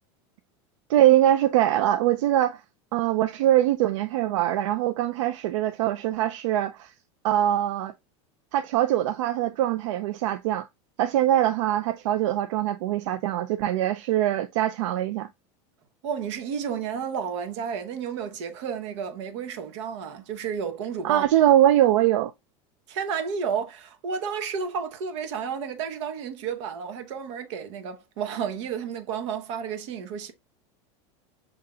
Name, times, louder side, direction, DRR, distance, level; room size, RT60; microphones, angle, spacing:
voice 1, 0.9-2.6 2.9-6.9 7.2-7.9 8.5-10.7 11.0-15.3 21.0-22.3, right 12 dB, 90° right, 0.4 m, -22 dB
voice 2, 16.0-21.3 22.9-30.3, right 7 dB, 70° right, 0.9 m, -31 dB
6.5 x 2.8 x 2.3 m
supercardioid pair, 170°, 16 cm